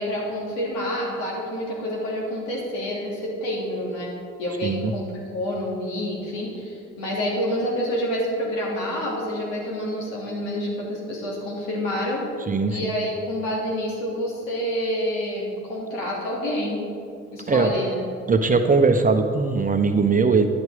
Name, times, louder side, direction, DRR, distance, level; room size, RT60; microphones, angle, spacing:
voice 1, 0.0-4.1 4.4-12.2 12.7-16.8 17.3-18.0, equal, 65° left, -3 dB, 3.1 m, -28 dB
voice 2, 4.6-4.9 12.5-12.9 17.5-17.7 18.3-20.5, right 4 dB, 25° right, 7 dB, 0.9 m, -20 dB
11.0 x 11.0 x 5.1 m, 2.3 s
figure-of-eight pair, 55°, 35 cm